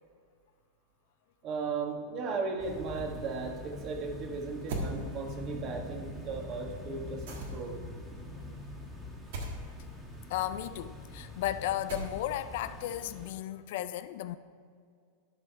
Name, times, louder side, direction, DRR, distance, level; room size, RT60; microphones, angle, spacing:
voice 1, 1.4-7.2 7.5-7.8, right 4 dB, 40° right, 3 dB, 1.5 m, -36 dB
sound 1, 2.6-13.3, left 2 dB, 15° right, 1.9 m, -44 dB
sound 2, 4.7-4.9 7.3-7.8 9.3-9.6 11.9-12.4, right 2 dB, 70° right, 1.6 m, -37 dB
voice 2, 10.3-14.4, left 13 dB, 65° left, 13 dB, 0.4 m, -34 dB
11.5 x 5.5 x 4.6 m, 2.2 s
hypercardioid pair, 105°, 0 cm